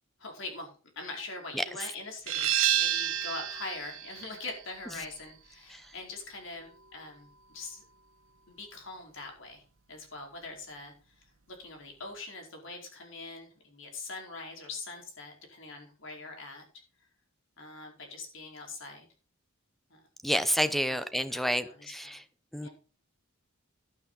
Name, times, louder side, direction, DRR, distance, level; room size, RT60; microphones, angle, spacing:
voice 1, 0.2-7.8 8.5-9.6 9.9-10.9 11.6-16.6 17.6-19.1 19.9-20.0 20.9-21.0 21.3-22.2 22.6-22.7, left 3 dB, 60° left, 1 dB, 4.7 m, -43 dB
sound 1, 2.3-7.7, right 11 dB, 70° right, 1.0 m, -32 dB
voice 2, 20.2-22.2 22.5-22.7, equal, ahead, 12 dB, 0.8 m, -29 dB
11.5 x 9.8 x 4.1 m, 0.36 s
head